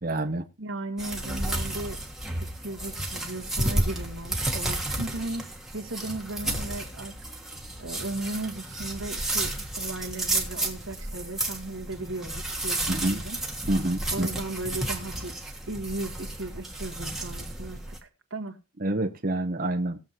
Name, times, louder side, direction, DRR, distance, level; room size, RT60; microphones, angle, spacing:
voice 1, 0.0-0.5 12.9-13.2 13.7-14.3 18.8-20.0, right 1 dB, 45° right, 0.9 m, -27 dB
voice 2, 0.6-2.0 2.5-7.2 7.8-13.4 14.1-15.3 15.7-18.6, right 2 dB, 85° right, 1.8 m, -36 dB
sound 1, 1.0-18.0, right 1 dB, ahead, 1.5 m, -32 dB
19.0 x 7.4 x 3.0 m
head